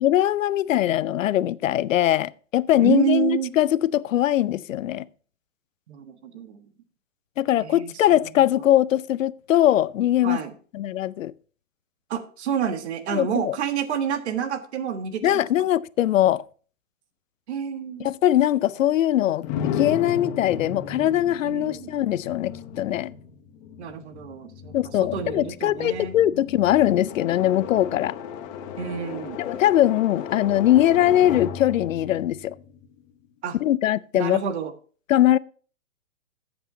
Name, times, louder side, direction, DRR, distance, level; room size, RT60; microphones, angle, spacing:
voice 1, 0.0-5.1 7.4-10.4 10.7-11.3 13.1-13.6 15.2-16.4 18.0-19.5 19.7-23.1 24.7-28.2 29.4-32.5 33.6-34.4 35.1-35.4, left 12 dB, 75° left, 0.6 m, -21 dB
voice 2, 2.8-3.5 5.9-6.7 7.6-7.9 10.2-10.5 12.1-15.4 17.5-18.1 21.4-21.9 23.8-24.7 25.0-26.2 28.8-29.4 33.4-33.6 34.1-34.7, right 8 dB, 55° right, 1.5 m, -28 dB
sound 1, 19.4-33.3, left 8 dB, 25° left, 1.0 m, -35 dB
13.5 x 8.1 x 2.8 m
hypercardioid pair, 145°, 40 cm